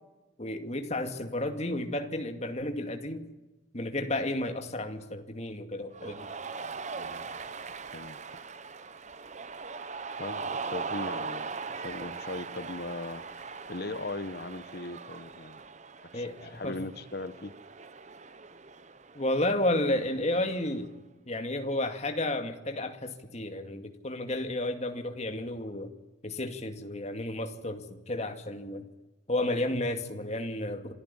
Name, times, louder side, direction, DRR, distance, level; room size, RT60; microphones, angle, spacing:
voice 1, 0.4-3.2 3.7-6.2 16.1-16.8 19.1-20.9 21.3-25.9 26.2-28.8 29.3-30.9, left 1 dB, 35° left, 2.3 m, -32 dB
Cheering, 5.9-20.8, right 4 dB, 35° right, 0.9 m, -40 dB
voice 2, 7.0-7.3 7.9-8.2 10.2-15.6 16.1-17.5, left 2 dB, 55° left, 1.1 m, -39 dB
27.0 x 14.5 x 10.0 m
head